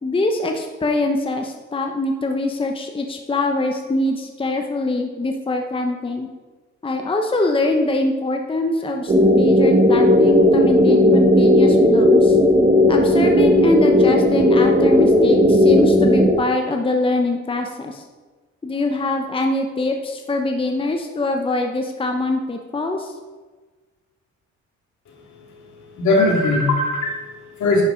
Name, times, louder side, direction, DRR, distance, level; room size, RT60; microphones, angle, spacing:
voice 1, 0.0-6.3 6.8-12.4 12.9-18.0 18.6-23.1, left 2 dB, 20° left, 3 dB, 0.8 m, -23 dB
sound 1, 9.1-16.3, left 1 dB, 25° right, 1.4 m, -14 dB
voice 2, 25.1-27.8, left 2 dB, 70° left, -3 dB, 2.8 m, -21 dB
10.5 x 5.4 x 5.1 m, 1.3 s
cardioid pair, 90°, 30 cm